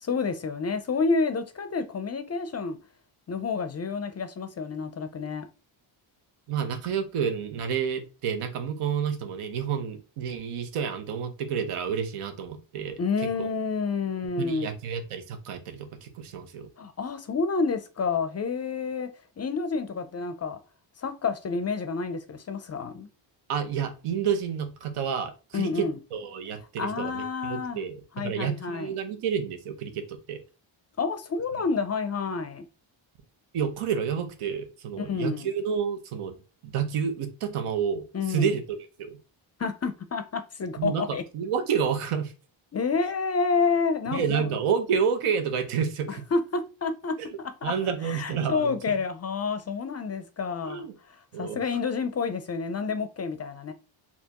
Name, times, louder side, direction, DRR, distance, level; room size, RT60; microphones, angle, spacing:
voice 1, 0.0-2.8 3.3-5.5 13.0-14.7 16.8-19.1 19.4-20.6 21.0-23.1 25.5-26.0 26.8-27.8 28.1-28.9 31.0-32.7 35.0-35.5 38.1-38.5 39.6-41.2 42.7-44.5 46.1-50.9 51.4-53.7, left 4 dB, 35° left, 0.4 m, -29 dB
voice 2, 6.5-13.0 13.4-13.5 14.4-16.7 23.5-30.4 33.5-36.3 36.6-39.2 40.8-41.0 41.3-42.3 44.1-46.2 47.2-47.3 47.6-48.8 50.6-50.9 51.3-51.6, right 7 dB, 90° right, 1.0 m, -29 dB
4.4 x 2.7 x 2.9 m
cardioid pair, 130°, 50 cm